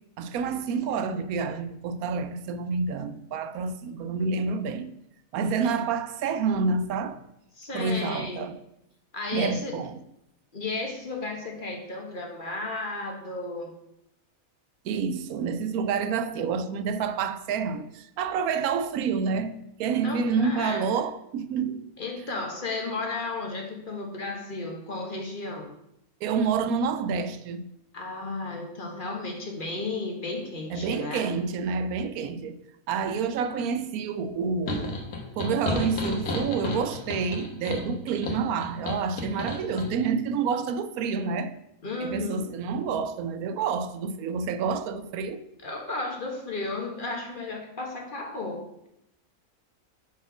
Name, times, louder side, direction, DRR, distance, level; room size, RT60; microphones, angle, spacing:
voice 1, 0.2-4.9 5.3-7.2 7.7-8.6 9.3-10.0 14.8-21.8 26.2-27.7 30.7-32.6 32.9-35.0 35.4-41.5 42.0-45.4, right 5 dB, 85° right, 1.1 m, -28 dB
voice 2, 7.6-8.5 9.1-9.8 10.5-13.7 20.0-20.8 22.0-25.7 27.9-31.3 41.8-42.5 45.6-48.9, left 3 dB, 40° left, 1.2 m, -34 dB
sound 1, 34.7-39.9, left 3 dB, 90° left, 1.7 m, -32 dB
5.9 x 4.3 x 6.0 m
omnidirectional pair, 1.5 m